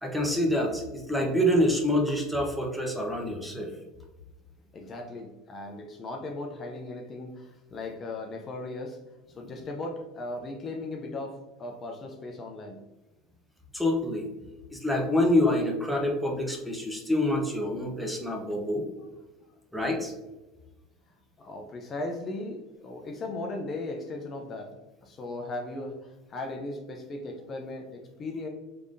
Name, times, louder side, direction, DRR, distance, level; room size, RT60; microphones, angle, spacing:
voice 1, 0.0-3.7 13.7-14.3 14.7-18.9 19.7-20.1, left 1 dB, ahead, 0 dB, 0.8 m, -26 dB
voice 2, 4.7-9.0 9.4-12.8 19.0-19.1 21.4-24.7 25.0-28.5, left 2 dB, 35° left, 2 dB, 0.5 m, -37 dB
3.5 x 3.3 x 2.5 m, 1.1 s
supercardioid pair, 100°, 0 cm